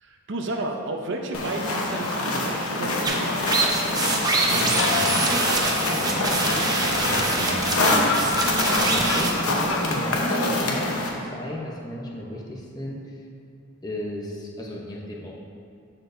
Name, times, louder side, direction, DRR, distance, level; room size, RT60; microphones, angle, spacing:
voice 1, 0.0-3.8, right 2 dB, 55° right, 2 dB, 0.6 m, -32 dB
sound 1, 1.3-11.1, left 2 dB, 90° left, 0.9 m, -26 dB
sound 2, 3.0-9.3, right 2 dB, 20° right, 0.6 m, -25 dB
sound 3, 3.1-12.0, left 3 dB, 65° left, 0.5 m, -33 dB
voice 2, 4.1-8.6 8.9-13.2 13.8-15.3, equal, 20° left, -2 dB, 0.8 m, -35 dB
12.5 x 4.4 x 2.6 m, 2.6 s
head